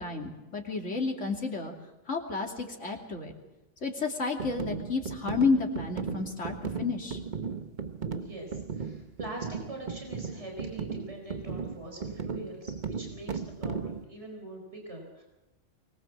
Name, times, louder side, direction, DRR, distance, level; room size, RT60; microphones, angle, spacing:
voice 1, 0.0-1.7 2.1-3.3 3.8-7.2, left 4 dB, 80° left, 2 dB, 3.2 m, -31 dB
sound 1, 4.4-14.0, right 5 dB, 40° right, 1.1 m, -36 dB
voice 2, 8.1-15.2, right 1 dB, 70° right, 1 dB, 5.0 m, -43 dB
24.0 x 20.0 x 7.4 m, 1.0 s
omnidirectional pair, 1.2 m